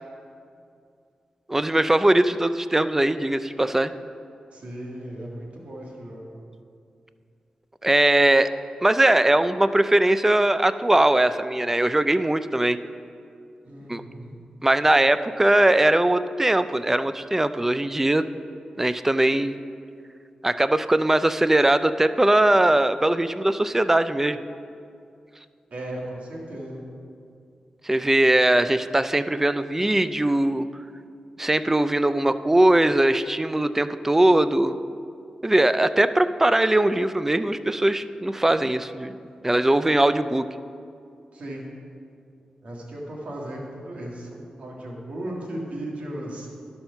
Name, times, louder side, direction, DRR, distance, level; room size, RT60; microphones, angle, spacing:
voice 1, 1.5-3.9 7.8-8.5 8.8-12.8 13.9-14.0 14.6-18.3 18.8-19.6 20.4-24.4 27.8-30.7 31.4-34.8 35.4-39.2 39.4-40.5, right 1 dB, 15° right, 12 dB, 0.3 m, -20 dB
voice 2, 4.5-6.3 13.6-14.3 25.7-26.8 41.3-41.6 42.6-44.3 44.6-46.5, right 1 dB, 65° right, -2 dB, 1.7 m, -36 dB
11.5 x 4.4 x 5.6 m, 2.4 s
cardioid pair, 65°, 2 cm